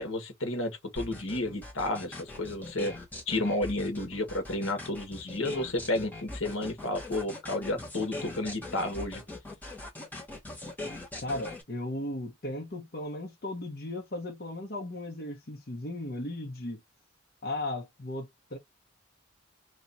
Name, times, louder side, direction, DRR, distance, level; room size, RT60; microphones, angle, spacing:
voice 1, 0.0-2.9 3.3-9.2, left 2 dB, 70° left, 1.5 m, -31 dB
sound 1, 1.0-11.6, left 2 dB, 10° left, 1.3 m, -41 dB
voice 2, 11.2-16.8 17.4-18.6, left 1 dB, 50° left, 1.1 m, -36 dB
3.1 x 3.0 x 4.1 m
head